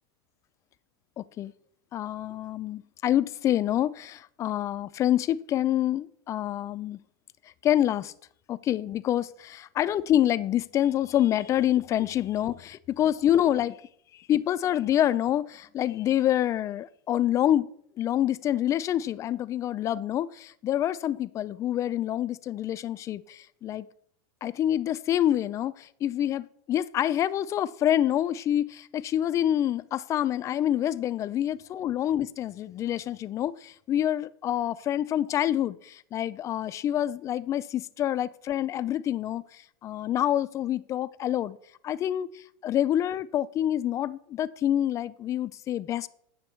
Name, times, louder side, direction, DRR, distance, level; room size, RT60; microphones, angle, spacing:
voice 1, 1.2-1.5 1.9-7.0 7.6-8.1 8.5-13.8 14.1-17.7 18.0-23.9 24.4-41.6 41.8-46.1, left 11 dB, 25° left, 15 dB, 0.3 m, -27 dB
8.9 x 7.0 x 4.4 m, 0.65 s
supercardioid pair, 135°, 12 cm